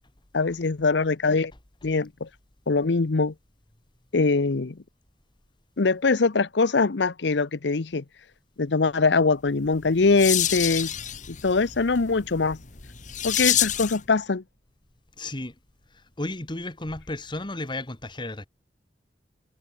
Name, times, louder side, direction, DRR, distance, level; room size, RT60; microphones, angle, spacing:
voice 1, 0.3-1.5 1.8-2.3 2.7-3.3 4.1-4.8 5.8-8.0 8.6-10.9 11.3-12.6 13.2-14.4, left 4 dB, 75° left, 0.8 m, -23 dB
sound 1, 9.6-14.1, left 11 dB, 45° left, 1.4 m, -28 dB
voice 2, 15.2-15.5 15.9-18.5, left 2 dB, 25° left, 1.7 m, -33 dB
head